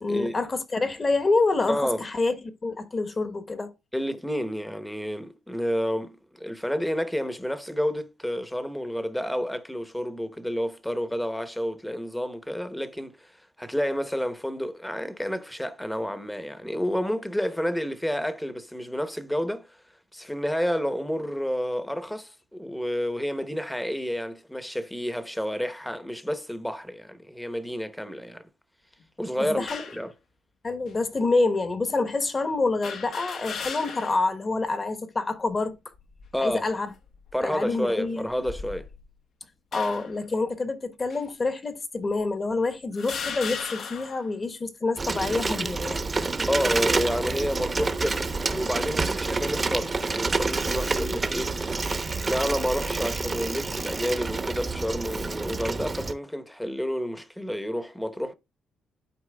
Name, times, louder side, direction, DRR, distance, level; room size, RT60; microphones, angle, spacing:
voice 1, 0.0-3.7 29.4-29.8 30.6-35.8 36.4-36.9 37.4-38.3 39.7-46.1, left 3 dB, 30° left, 1.2 m, -27 dB
voice 2, 1.7-2.0 3.9-13.3 13.6-19.7 20.1-28.4 29.2-30.1 36.3-36.6 37.3-38.9 46.5-51.5 52.3-58.3, equal, 5° left, 0.9 m, -30 dB
sound 1, 29.7-30.1 30.9-31.0 32.8-34.3 34.7-34.8 35.9-36.4 37.1-37.3 38.3-39.1 39.7-40.2 41.1-41.2 42.1-42.2 42.9-44.3, left 6 dB, 65° left, 1.1 m, -36 dB
Bicycle, 45.0-56.1, right 3 dB, 30° right, 0.8 m, -28 dB
12.0 x 4.4 x 2.3 m
cardioid pair, 90°, 0 cm